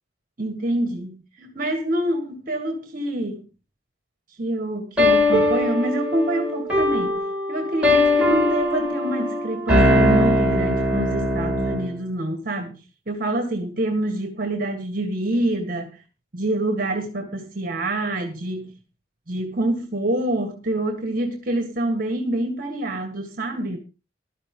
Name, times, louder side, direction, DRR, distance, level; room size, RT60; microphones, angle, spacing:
voice 1, 0.4-3.4 4.4-7.2 7.5-12.8 13.1-16.0 16.3-18.7 19.3-23.8, right 1 dB, 45° right, 1.7 m, -26 dB
sound 1, 5.0-11.9, left 1 dB, 5° right, 5.4 m, -20 dB
14.5 x 12.5 x 3.8 m
head